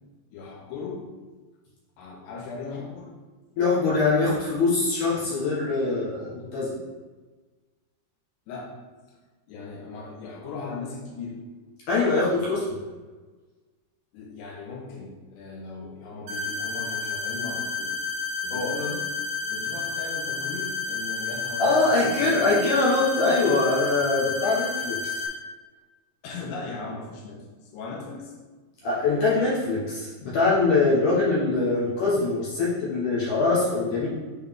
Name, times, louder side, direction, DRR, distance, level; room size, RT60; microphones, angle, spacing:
voice 1, 0.3-1.1 2.0-3.1 8.5-8.7 9.1-9.2 9.5-11.4 14.1-18.0 18.4-19.1 19.5-22.5 26.2-28.3, left 4 dB, 85° left, -2 dB, 3.2 m, -38 dB
voice 2, 3.6-6.7 11.9-12.6 18.5-18.7 21.6-25.1 28.8-34.1, left 3 dB, 65° left, -7 dB, 2.2 m, -23 dB
sound 1, 16.3-25.3, left 4 dB, 65° right, 2.3 m, -31 dB
6.9 x 4.0 x 3.6 m, 1.3 s
omnidirectional pair, 4.8 m